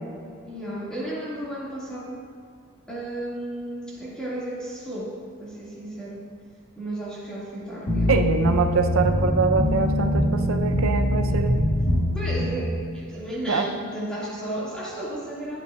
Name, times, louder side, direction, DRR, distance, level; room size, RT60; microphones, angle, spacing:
voice 1, 0.4-2.2 2.9-6.3 6.8-8.1 12.1-15.6, right 1 dB, 5° left, -8 dB, 2.0 m, -33 dB
sound 1, 7.9-12.4, left 1 dB, 90° left, 1.7 m, -23 dB
voice 2, 8.1-11.7 13.5-13.7, right 4 dB, 85° right, 6 dB, 0.6 m, -24 dB
13.0 x 8.8 x 2.4 m, 2.3 s
head